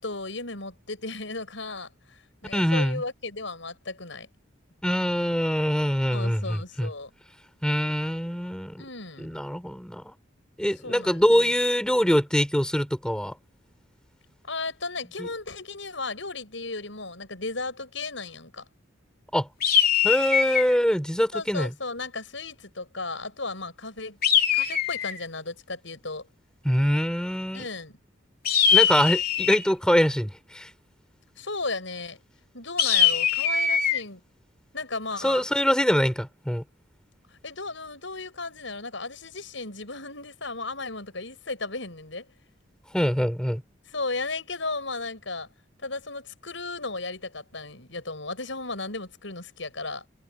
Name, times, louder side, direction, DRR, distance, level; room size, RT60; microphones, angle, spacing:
voice 1, 0.0-4.3 6.1-7.1 8.8-9.4 10.8-11.6 14.4-18.6 21.3-24.2 24.5-26.3 27.5-28.0 31.4-32.2 32.5-34.2 34.7-35.4 37.3-42.3 43.9-45.5 45.8-50.0, left 3 dB, 70° left, 6.9 m, -35 dB
voice 2, 2.5-3.0 4.8-6.9 7.6-8.8 9.2-10.1 10.6-13.3 15.2-15.3 19.3-19.5 20.0-21.7 26.7-27.7 28.7-30.7 35.2-36.6 42.9-43.6, equal, 5° left, 5.4 m, -24 dB
sound 1, 19.6-20.8 24.2-25.2 28.4-29.7 32.8-34.0, left 8 dB, 50° left, 3.5 m, -22 dB
head